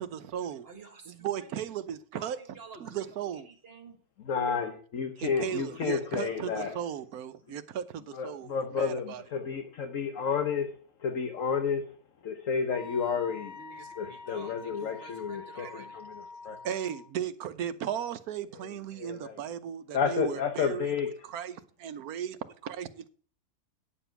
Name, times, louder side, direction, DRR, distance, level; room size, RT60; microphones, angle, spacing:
voice 1, 0.0-0.7 1.1-2.4 2.8-3.5 5.2-9.2 15.6-15.7 16.6-20.9 21.3-23.1, right 9 dB, 70° right, 1.3 m, -36 dB
voice 2, 0.6-1.6 2.1-4.0 5.3-6.8 13.5-16.0 16.5-16.7, right 3 dB, 40° right, 1.7 m, -50 dB
voice 3, 4.3-6.8 8.1-10.7 11.0-12.0 12.2-13.5 14.0-16.6 18.9-19.4 19.9-21.1, left 6 dB, 55° left, 1.3 m, -31 dB
Wind instrument woodwind instrument, 12.7-17.1, left 4 dB, 15° left, 0.6 m, -46 dB
9.9 x 7.1 x 5.7 m
omnidirectional pair, 1.7 m